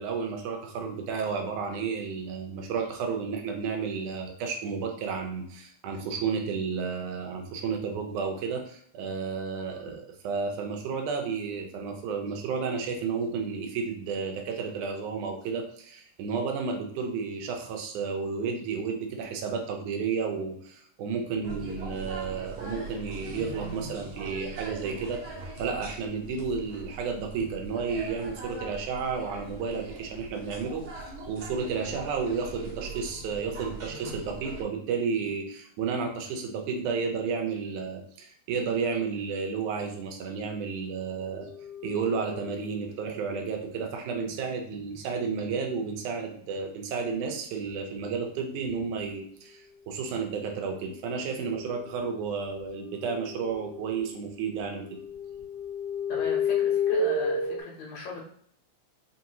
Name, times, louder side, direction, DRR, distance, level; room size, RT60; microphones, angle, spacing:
voice 1, 0.0-41.5 41.8-54.8, right 5 dB, 90° right, 3 dB, 2.2 m, -32 dB
sound 1, 21.4-34.6, right 3 dB, 65° right, 1.4 m, -40 dB
sound 2, 41.2-42.7 50.5-54.1 54.4-57.6, left 4 dB, 50° left, 1.0 m, -32 dB
voice 2, 56.1-58.2, left 3 dB, 75° left, -2 dB, 2.4 m, -38 dB
5.3 x 2.7 x 2.9 m, 0.63 s
omnidirectional pair, 3.4 m